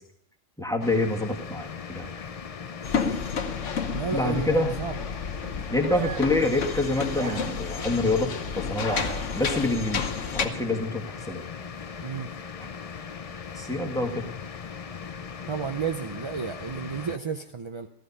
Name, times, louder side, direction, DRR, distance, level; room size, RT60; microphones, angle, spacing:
voice 1, 0.6-2.2 4.1-4.8 5.7-10.1 10.3-11.4 13.6-14.2, left 2 dB, 5° left, 2 dB, 1.8 m, -27 dB
sound 1, 0.8-17.2, left 6 dB, 40° left, 0.5 m, -39 dB
sound 2, 2.8-10.5, left 5 dB, 75° left, 1.3 m, -31 dB
voice 2, 3.9-5.0 12.0-12.3 15.5-17.9, right 6 dB, 40° right, 6 dB, 0.4 m, -32 dB
sound 3, 5.9-6.4 7.1-8.1 8.7-9.7, right 7 dB, 70° right, 1.1 m, -38 dB
14.5 x 14.0 x 5.5 m, 0.73 s
omnidirectional pair, 1.3 m